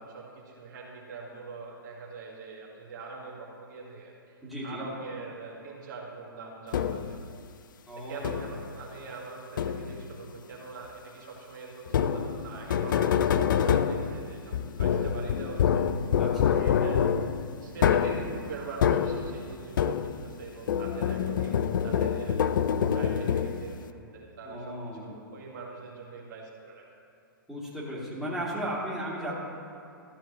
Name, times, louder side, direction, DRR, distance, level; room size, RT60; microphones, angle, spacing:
voice 1, 0.0-4.3 4.6-7.2 8.0-16.1 16.5-17.1 17.6-21.6 21.8-22.5 22.9-26.8, right 4 dB, 55° right, -3 dB, 1.8 m, -43 dB
voice 2, 4.4-4.8 7.9-8.5 16.2-16.6 24.4-25.2 27.5-29.3, equal, ahead, -8 dB, 2.2 m, -35 dB
sound 1, 6.7-7.2 8.2-8.7 9.6-10.1 11.9-20.4 20.7-23.8, left 8 dB, 60° left, 0.4 m, -26 dB
13.5 x 7.5 x 3.1 m, 2.7 s
figure-of-eight pair, 115°, 12 cm